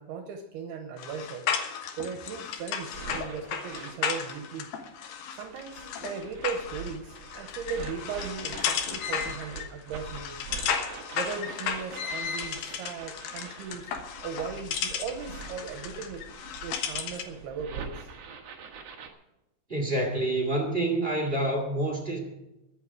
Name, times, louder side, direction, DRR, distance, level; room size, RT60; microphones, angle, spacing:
voice 1, 0.0-1.5 2.0-4.7 5.3-10.4 11.1-13.9 14.2-16.2 16.6-18.1, right 6 dB, 75° right, 5 dB, 2.8 m, -37 dB
sound 1, 1.0-17.4, left 7 dB, 70° left, 3.2 m, -34 dB
sound 2, 2.6-4.6 5.3-19.1, right 5 dB, 60° right, 1.7 m, -44 dB
voice 2, 19.7-22.2, right 1 dB, 20° right, 2 dB, 1.7 m, -27 dB
22.5 x 8.2 x 4.8 m, 0.92 s
omnidirectional pair, 5.0 m